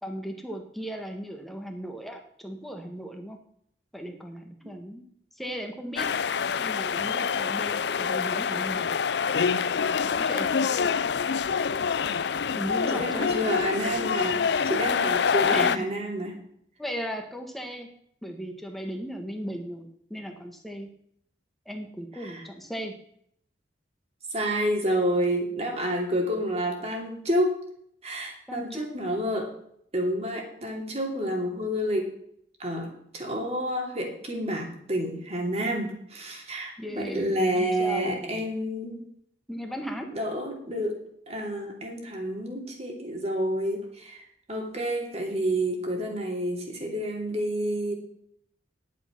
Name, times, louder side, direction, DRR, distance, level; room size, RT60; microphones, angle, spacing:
voice 1, 0.0-3.4 3.9-5.1 5.3-6.1 6.6-8.9 10.0-10.5 12.5-13.5 15.3-16.0 16.8-17.9 18.2-20.9 21.6-22.9 28.5-28.9 36.8-38.4 39.5-40.1, equal, ahead, 3 dB, 1.7 m, -36 dB
sound 1, 6.0-15.8, left 6 dB, 65° left, 0.5 m, -26 dB
voice 2, 12.9-16.4 22.2-22.5 24.3-27.6 28.0-29.5 29.9-32.1 32.6-39.0 40.1-41.0 41.3-47.9, equal, 35° right, 2 dB, 2.8 m, -29 dB
11.0 x 8.5 x 6.1 m, 0.67 s
head